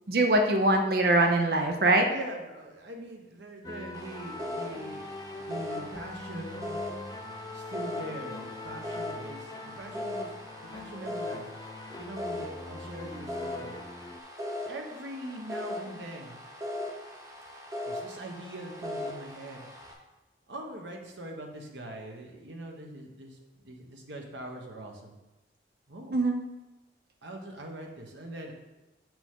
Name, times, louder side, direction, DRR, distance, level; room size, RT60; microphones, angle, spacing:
voice 1, 0.1-2.1 26.1-26.4, right 2 dB, 55° right, 4 dB, 0.6 m, -23 dB
voice 2, 2.0-5.1 5.3-6.7 7.5-11.4 11.7-13.8 14.7-16.4 17.9-19.7 20.5-25.1 25.9-26.2 27.2-28.5, right 1 dB, 85° right, 1 dB, 1.2 m, -42 dB
sound 1, 3.6-14.2, left 2 dB, 20° left, 0.3 m, -43 dB
sound 2, 3.9-19.9, left 1 dB, 20° right, 0.8 m, -39 dB
7.1 x 6.0 x 3.7 m, 1.0 s
head